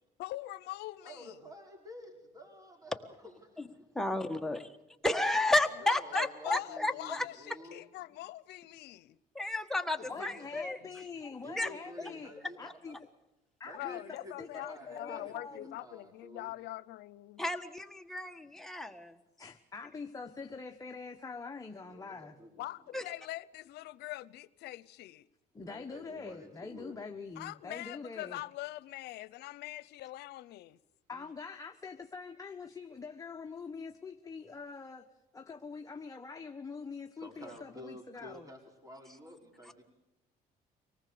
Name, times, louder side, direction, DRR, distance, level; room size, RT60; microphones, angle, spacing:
voice 1, 0.2-1.4 5.8-9.2 13.7-17.4 22.6-25.3 27.4-30.8, left 17 dB, 80° left, 0.8 m, -43 dB
voice 2, 1.0-3.7 5.8-7.8 10.0-10.5 11.4-12.9 13.6-16.5 21.8-22.6 22.9-23.0 25.6-27.0 37.2-39.8, left 1 dB, 20° right, 4.9 m, -50 dB
voice 3, 3.9-4.7 5.0-7.2 9.3-10.8 11.6-11.7 12.6-12.7 17.4-19.2 22.9-23.0, left 2 dB, ahead, 1.6 m, -32 dB
voice 4, 10.1-12.3 12.6-13.0 13.6-15.8 19.4-22.4 25.5-28.4 31.1-35.1 35.3-38.5, left 4 dB, 20° left, 1.1 m, -44 dB
25.0 x 19.0 x 6.9 m
cardioid pair, 110°, 17 cm